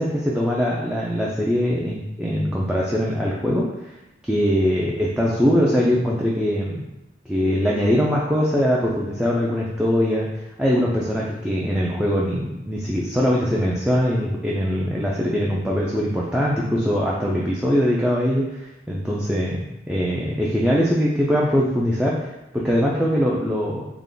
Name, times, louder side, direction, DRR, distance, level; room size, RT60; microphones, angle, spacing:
voice 1, 0.0-3.6 4.2-6.9 7.3-10.3 10.6-18.6 18.9-19.6 19.9-23.8, equal, 5° right, -5 dB, 0.3 m, -22 dB
3.4 x 2.2 x 3.7 m, 0.96 s
head